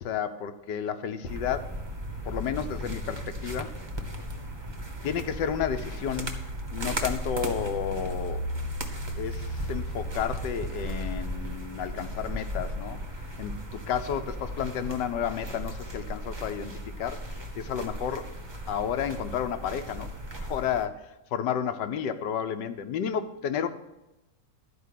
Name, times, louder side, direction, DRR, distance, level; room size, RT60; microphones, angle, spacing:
voice 1, 0.0-1.8 2.2-3.7 5.0-6.4 6.7-8.4 9.2-13.0 13.4-18.3 18.7-20.1 20.4-23.7, left 8 dB, 70° left, 10 dB, 1.4 m, -31 dB
sound 1, 1.3-20.9, equal, 20° right, 0.7 m, -36 dB
12.0 x 5.1 x 8.3 m, 0.96 s
omnidirectional pair, 2.0 m